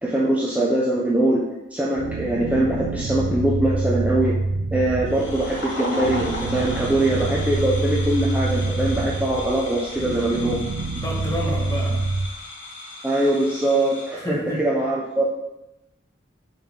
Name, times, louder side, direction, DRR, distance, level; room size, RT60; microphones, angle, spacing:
voice 1, 0.0-1.5 1.7-4.4 4.7-10.6 13.0-15.3, right 1 dB, 10° right, -4 dB, 0.8 m, -22 dB
sound 1, 2.0-12.3, right 3 dB, 85° right, 0.4 m, -26 dB
sound 2, 5.1-14.2, left 2 dB, 80° left, 2.4 m, -36 dB
voice 2, 11.0-12.1 14.1-14.7, left 1 dB, 20° left, -3 dB, 1.7 m, -29 dB
6.7 x 4.3 x 6.1 m, 0.92 s
head